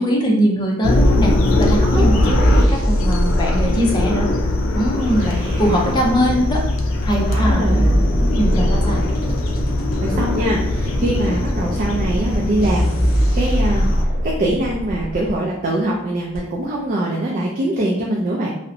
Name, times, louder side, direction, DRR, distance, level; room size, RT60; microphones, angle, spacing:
voice 1, 0.0-1.3 1.6-4.3 4.7-6.6 7.0-7.8 8.4-9.0 10.1-10.2, equal, 20° left, -2 dB, 0.5 m, -21 dB
sound 1, 0.8-14.0, left 1 dB, 80° left, 0.4 m, -21 dB
voice 2, 1.8-2.1 7.3-7.9 10.0-13.9 14.2-18.5, right 1 dB, 40° right, -3 dB, 0.3 m, -23 dB
sound 2, 1.9-4.7 5.6-5.7 6.5-6.6 7.0-10.0 10.8-10.9 11.8-11.9 12.3-12.4 12.6-15.3 16.3-16.4, equal, 45° left, 1.1 m, -20 dB
sound 3, 4.9-12.7, equal, 25° right, 0.8 m, -34 dB
2.7 x 2.0 x 2.5 m, 0.79 s
head